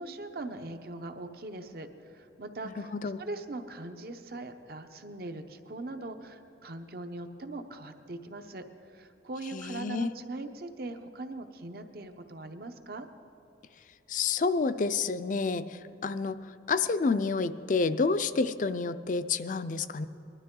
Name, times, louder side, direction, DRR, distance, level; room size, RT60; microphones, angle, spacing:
voice 1, 0.0-2.9 3.2-8.6 8.9-13.1, right 2 dB, 55° right, 8 dB, 0.8 m, -41 dB
voice 2, 2.8-3.2 9.5-10.1 14.1-16.4 16.7-20.1, left 4 dB, 45° left, 13 dB, 0.4 m, -29 dB
20.5 x 12.0 x 3.7 m, 2.9 s
head